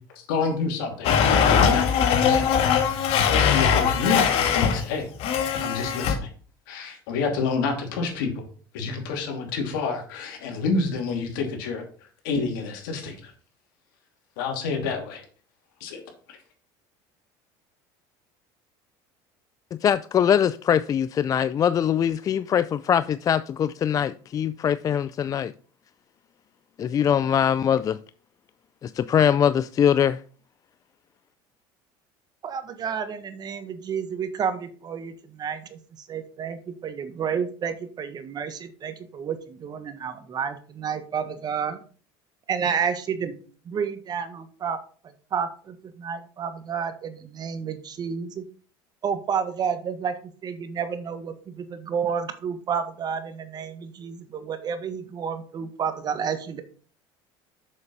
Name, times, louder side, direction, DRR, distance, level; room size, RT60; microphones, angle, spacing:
voice 1, 0.1-5.1 5.6-6.3 6.7-8.4 8.7-13.3 14.4-15.2 15.8-16.0 16.3-16.4, left 4 dB, 85° left, 2.8 m, -29 dB
Domestic sounds home sounds, 1.0-4.8 5.2-6.1, left 7 dB, 65° left, 1.9 m, -21 dB
voice 2, 19.8-25.5 26.8-28.0 28.8-30.2, left 9 dB, 35° left, 0.3 m, -22 dB
voice 3, 32.4-41.8 42.5-43.3 43.6-44.8 45.3-48.4 49.0-56.6, right 7 dB, 40° right, 1.5 m, -30 dB
7.1 x 6.7 x 5.4 m
supercardioid pair, 105°, 11 cm